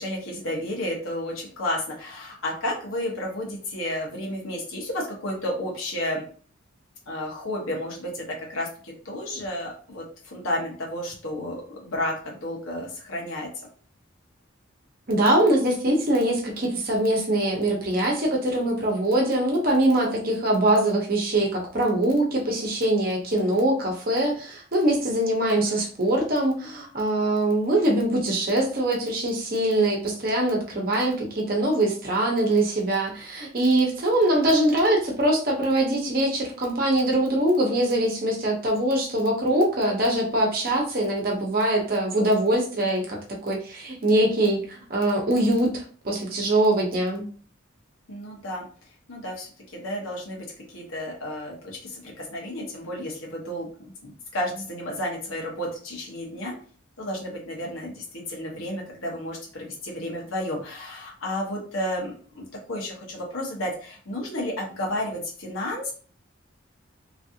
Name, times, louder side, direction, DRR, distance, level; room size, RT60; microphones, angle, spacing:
voice 1, 0.0-6.2 7.1-13.5 25.5-25.8 48.1-48.6 49.1-56.5 57.0-65.9, left 1 dB, 85° left, -2 dB, 1.2 m, -32 dB
voice 2, 15.1-43.2 43.4-47.2, right 1 dB, 45° right, -1 dB, 0.9 m, -23 dB
3.1 x 2.6 x 2.7 m, 0.43 s
head